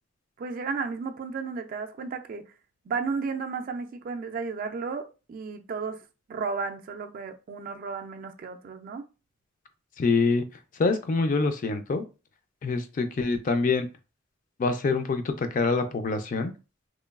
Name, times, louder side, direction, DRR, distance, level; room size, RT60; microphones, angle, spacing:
voice 1, 0.4-2.4 2.9-9.1, right 5 dB, 45° right, 0.3 m, -33 dB
voice 2, 10.0-10.4 10.8-12.0 12.6-13.9 14.6-16.5, left 4 dB, 40° left, 0.4 m, -25 dB
3.0 x 2.2 x 2.3 m
head